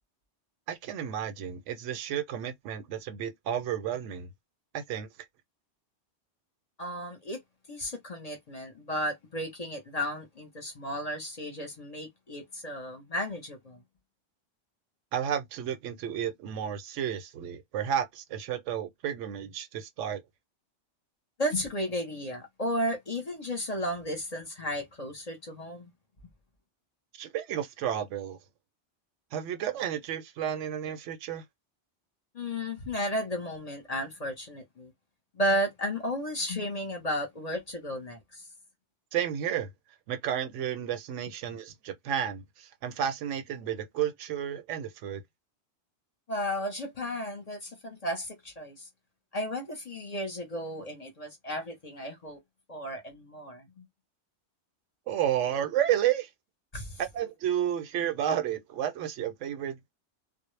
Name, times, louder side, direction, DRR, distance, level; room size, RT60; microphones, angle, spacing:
voice 1, 0.7-4.3 4.7-5.1 15.1-20.2 27.1-28.4 29.3-31.4 39.1-39.7 40.1-45.2 55.1-56.3 57.1-59.9, right 10 dB, 90° right, 0.9 m, -32 dB
voice 2, 6.8-7.4 7.7-13.8 21.4-25.9 32.3-34.9 35.3-38.4 46.3-48.9 49.3-52.4 52.7-53.9 56.7-57.0, equal, 40° left, 0.7 m, -34 dB
2.0 x 2.0 x 3.1 m
omnidirectional pair, 1.2 m